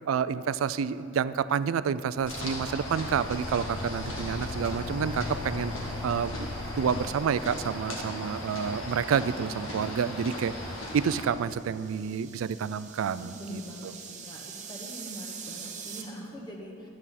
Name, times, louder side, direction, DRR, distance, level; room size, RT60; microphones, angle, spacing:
voice 1, 0.1-5.7 6.0-6.5 6.8-10.5 10.9-13.6, right 7 dB, 85° right, 16 dB, 0.3 m, -29 dB
sound 1, 2.2-8.4, left 3 dB, 50° left, 0.4 m, -39 dB
sound 2, 2.3-11.2, left 1 dB, 75° left, 1.9 m, -37 dB
sound 3, 10.9-16.0, right 6 dB, 35° right, 0.9 m, -44 dB
voice 2, 13.2-16.9, equal, 20° left, -1 dB, 1.4 m, -43 dB
12.5 x 8.7 x 4.1 m, 2.5 s
head